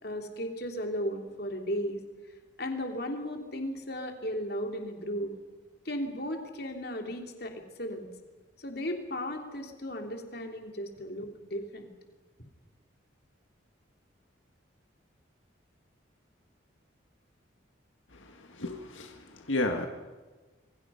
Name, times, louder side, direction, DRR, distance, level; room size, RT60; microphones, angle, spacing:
voice 1, 0.0-2.0 2.6-5.3 5.8-8.1 8.6-11.9, equal, 55° left, 3 dB, 3.1 m, -35 dB
voice 2, 18.1-19.9, left 2 dB, 85° left, 3 dB, 1.9 m, -33 dB
27.0 x 23.0 x 5.7 m, 1.3 s
head